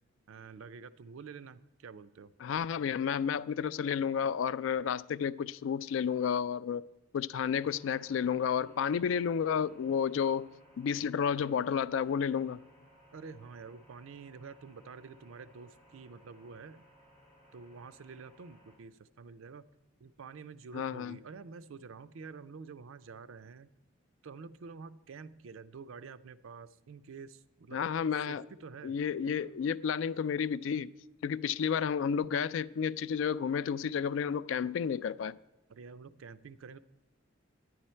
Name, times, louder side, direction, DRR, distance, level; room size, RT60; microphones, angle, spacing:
voice 1, 0.3-2.3 13.1-16.8 17.5-19.7 20.0-23.7 24.2-27.8 28.3-29.0 35.7-36.8, right 5 dB, 80° right, 0.4 m, -48 dB
voice 2, 2.4-6.8 7.1-10.5 10.8-12.6 20.7-21.2 27.7-28.4 28.8-30.9 31.2-35.4, left 7 dB, 65° left, 0.3 m, -31 dB
sound 1, 7.5-18.8, equal, 15° left, 3.2 m, -61 dB
10.0 x 9.5 x 4.4 m
head